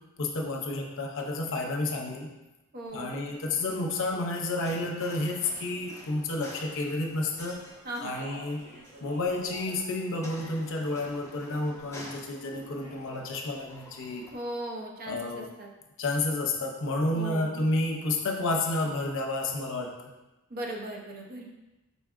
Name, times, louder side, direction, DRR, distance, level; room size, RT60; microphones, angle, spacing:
voice 1, 0.2-2.3 2.9-7.6 8.0-8.6 9.0-14.3 15.1-15.4 16.0-20.1, left 2 dB, 60° left, 2 dB, 0.6 m, -30 dB
voice 2, 2.7-3.2 7.8-8.2 14.3-15.7 17.1-17.6 20.5-21.5, right 1 dB, 45° right, 0 dB, 0.6 m, -38 dB
sound 1, 2.8-14.3, left 1 dB, 15° left, 0.5 m, -50 dB
Speech, 7.9-9.8 10.1-11.0 12.4-13.1, right 1 dB, 75° right, 1.3 m, -48 dB
4.5 x 4.0 x 2.4 m, 1.0 s
head